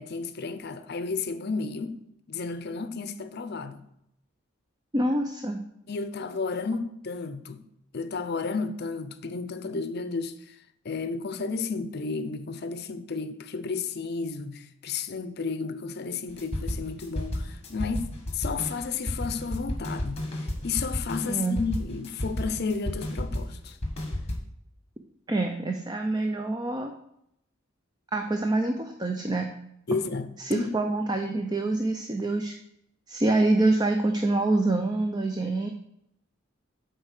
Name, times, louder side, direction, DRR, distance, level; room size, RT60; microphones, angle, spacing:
voice 1, 0.0-2.0 2.3-3.8 5.9-7.6 7.9-10.6 10.8-18.0 18.3-20.2 20.6-23.8 29.9-30.7, left 4 dB, 55° left, 0.6 m, -32 dB
voice 2, 4.9-5.6 21.3-21.6 25.3-26.9 28.1-29.5 30.4-32.6 33.1-35.7, right 2 dB, 20° right, 0.5 m, -26 dB
sound 1, 16.3-24.4, left 1 dB, 30° left, 1.5 m, -32 dB
7.9 x 4.5 x 6.5 m
head